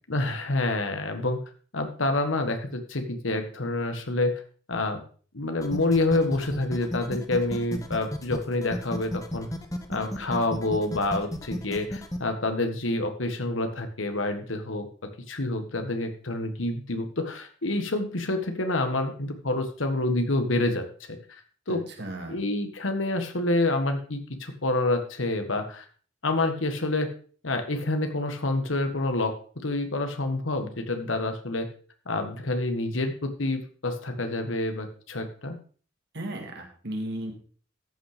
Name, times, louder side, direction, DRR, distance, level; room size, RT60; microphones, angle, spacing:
voice 1, 0.1-1.4 1.7-4.4 4.7-5.0 5.3-9.5 9.9-14.9 15.3-21.4 21.7-21.8 22.3-25.8 26.2-27.1 27.4-31.7 32.0-35.6, left 2 dB, 85° left, 7 dB, 1.6 m, -28 dB
sound 1, 5.6-12.2, left 1 dB, 20° left, 1.2 m, -33 dB
voice 2, 21.7-22.4 36.1-37.3, right 1 dB, 60° right, 3 dB, 2.4 m, -35 dB
14.0 x 5.8 x 5.0 m, 0.42 s
head